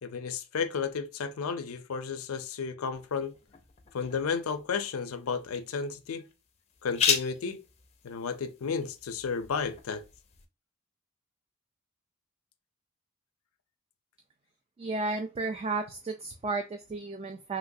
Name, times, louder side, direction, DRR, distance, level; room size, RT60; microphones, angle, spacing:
voice 1, 0.0-3.3 3.9-6.2 6.8-7.6 8.0-10.0, left 5 dB, 85° left, 0.5 m, -33 dB
sound 1, 2.9-10.5, left 7 dB, 30° left, 0.5 m, -36 dB
voice 2, 14.8-17.6, right 3 dB, 30° right, 0.3 m, -33 dB
3.1 x 3.0 x 2.6 m
head